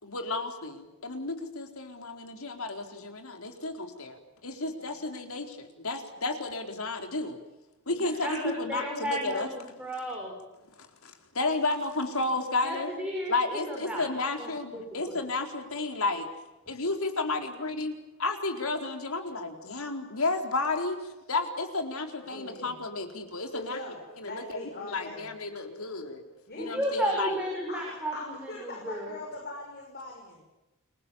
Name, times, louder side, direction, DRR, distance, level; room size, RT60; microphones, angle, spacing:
voice 1, 0.0-7.4 7.9-9.5 10.8-12.9 13.3-16.2 16.7-17.9 18.2-21.0 21.3-23.8 24.2-26.2 26.6-27.4, left 3 dB, 85° left, 5 dB, 4.3 m, -32 dB
voice 2, 7.9-10.3 12.6-14.0 14.4-15.2 26.6-29.1, equal, 5° right, -2 dB, 6.8 m, -34 dB
voice 3, 22.2-22.8 23.5-25.3 26.5-26.8 27.7-30.4, left 2 dB, 50° left, 0 dB, 6.3 m, -41 dB
30.0 x 24.0 x 7.3 m, 1.0 s
head